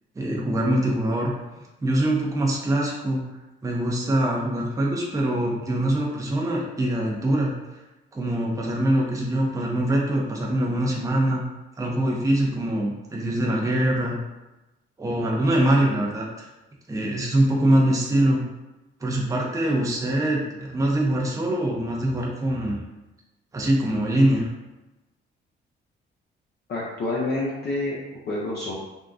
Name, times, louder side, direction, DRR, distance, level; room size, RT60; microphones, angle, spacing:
voice 1, 0.2-1.3 1.8-3.2 3.6-7.5 8.1-11.4 11.8-14.2 15.0-16.5 16.9-18.4 19.0-22.8 23.5-24.5, right 1 dB, 15° right, -2 dB, 0.6 m, -23 dB
voice 2, 26.7-28.0 28.3-28.7, left 2 dB, 55° left, -5 dB, 0.6 m, -27 dB
3.5 x 2.2 x 2.5 m, 1.0 s
cardioid pair, 90°, 20 cm